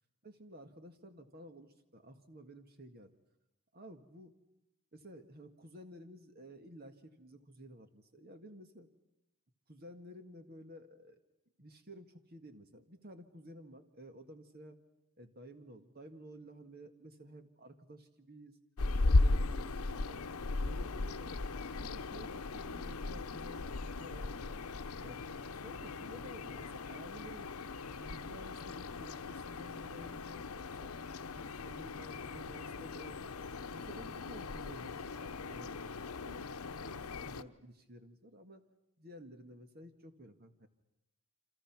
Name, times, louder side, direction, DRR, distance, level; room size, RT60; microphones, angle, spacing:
voice 1, 0.2-3.2 3.7-4.3 4.9-8.9 9.7-11.2 11.6-14.8 15.2-18.6 19.0-20.2 20.6-21.4 21.7-24.6 25.0-27.7 28.0-30.9 31.4-33.3 33.6-35.1 35.4-35.8 36.2-36.5 36.7-38.6 39.0-40.7, equal, 45° right, 8 dB, 1.8 m, -53 dB
sound 1, 18.8-37.4, left 3 dB, 85° left, 0.8 m, -37 dB
28.5 x 26.5 x 6.0 m, 0.89 s
head